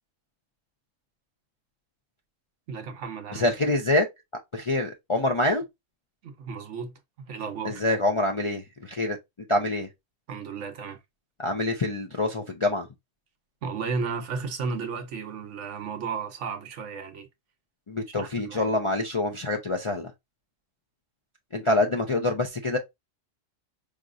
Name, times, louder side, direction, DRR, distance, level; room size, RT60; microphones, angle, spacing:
voice 1, 2.7-3.5 6.2-7.8 10.3-11.0 13.6-17.3 18.1-18.7, right 5 dB, 70° right, 1.1 m, -34 dB
voice 2, 3.3-4.1 4.5-5.6 7.6-9.2 9.5-9.9 11.4-12.9 17.9-20.1 21.5-22.8, left 2 dB, 40° left, 0.4 m, -26 dB
4.9 x 2.9 x 2.5 m
omnidirectional pair, 1.3 m